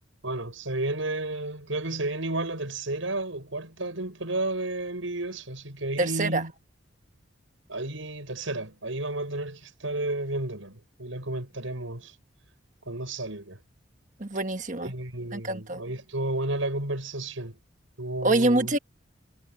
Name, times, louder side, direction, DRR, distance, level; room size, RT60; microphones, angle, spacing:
voice 1, 0.2-6.5 7.7-12.1 12.9-13.6 14.8-17.6 18.0-18.7, right 2 dB, 80° right, 6.4 m, -32 dB
voice 2, 6.0-6.4 14.2-14.9 15.3-15.8 18.2-18.8, right 2 dB, 40° right, 1.3 m, -25 dB
head